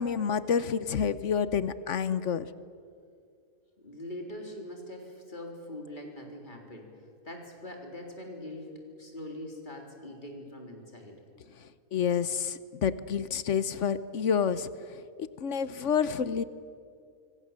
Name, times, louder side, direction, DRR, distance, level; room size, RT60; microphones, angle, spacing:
voice 1, 0.0-2.5 11.9-16.4, left 7 dB, 60° left, 14 dB, 1.1 m, -29 dB
voice 2, 3.8-6.9 7.2-11.2, left 1 dB, 30° left, 1 dB, 4.0 m, -42 dB
26.0 x 24.5 x 7.5 m, 2.3 s
omnidirectional pair, 1.5 m